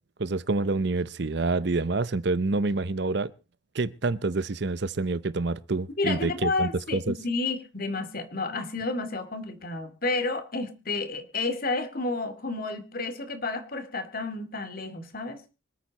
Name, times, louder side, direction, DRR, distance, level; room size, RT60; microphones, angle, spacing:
voice 1, 0.2-3.3 3.7-7.1, right 3 dB, 55° right, 0.7 m, -27 dB
voice 2, 6.0-15.4, left 3 dB, 45° left, 2.4 m, -31 dB
25.5 x 9.1 x 4.1 m
head